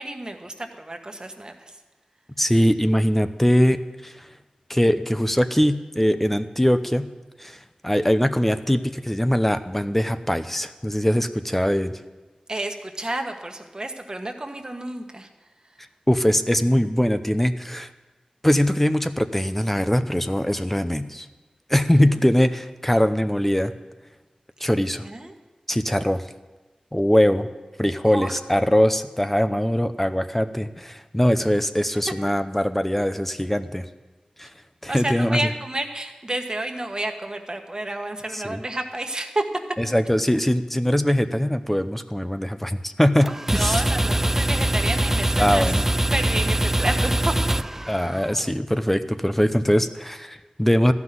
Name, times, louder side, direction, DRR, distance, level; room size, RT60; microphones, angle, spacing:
voice 1, 0.0-1.8 12.5-15.3 22.1-22.2 25.0-25.3 28.0-28.4 34.9-39.4 43.5-47.3, right 1 dB, 35° right, 4 dB, 1.3 m, -30 dB
voice 2, 2.4-4.3 4.7-7.1 7.4-11.9 16.1-17.9 18.4-21.3 21.7-23.7 24.6-25.1 25.7-26.2 26.9-27.5 27.8-33.8 34.4-34.5 34.8-35.4 38.3-38.6 39.8-43.8 45.4-45.8 47.9-50.9, equal, 10° left, 10 dB, 0.7 m, -21 dB
sound 1, 43.2-48.4, right 1 dB, 15° right, 0.3 m, -23 dB
14.0 x 5.9 x 9.4 m, 1.2 s
wide cardioid pair, 65°, 2 cm